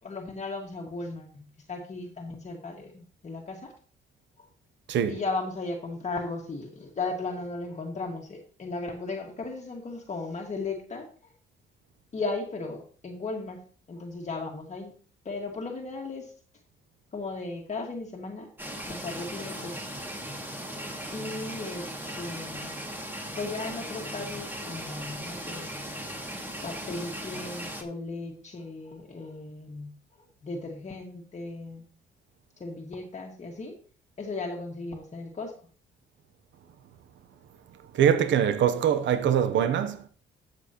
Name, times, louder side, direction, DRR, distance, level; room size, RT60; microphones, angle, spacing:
voice 1, 0.0-3.7 4.4-4.5 5.1-11.3 12.1-13.6 13.9-14.9 15.3-16.3 17.1-18.5 18.9-19.8 21.1-21.9 22.2-22.8 23.3-25.7 26.6-29.9 30.4-31.8 32.6-33.8 34.2-35.5, left 3 dB, 35° left, 1.8 m, -36 dB
voice 2, 4.9-5.2 37.9-40.1, right 9 dB, 70° right, 0.9 m, -23 dB
sound 1, 18.6-27.8, equal, 10° right, 2.2 m, -38 dB
12.5 x 7.6 x 3.0 m
cardioid pair, 90°, 20 cm